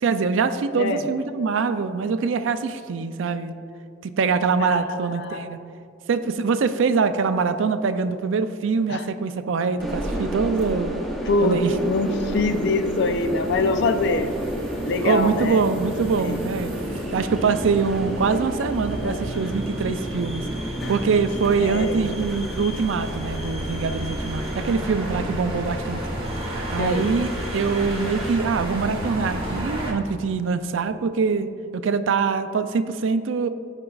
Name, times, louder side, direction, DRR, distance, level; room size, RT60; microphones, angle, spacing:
voice 1, 0.0-3.5 4.0-5.6 6.1-11.0 11.4-11.7 15.0-16.7 17.1-26.0 26.4-33.5, right 5 dB, 70° right, 11 dB, 0.4 m, -24 dB
voice 2, 4.6-5.6 8.9-9.1 11.3-14.4 14.8-15.6 16.2-16.4 19.0-19.2 20.8-20.9 21.6-22.1 26.8-27.1, left 3 dB, 60° left, 8 dB, 0.4 m, -24 dB
sound 1, 9.8-28.4, right 1 dB, ahead, 0.7 m, -32 dB
sound 2, 11.3-29.9, right 1 dB, 25° right, 1.2 m, -33 dB
13.0 x 4.9 x 2.4 m, 2.7 s
head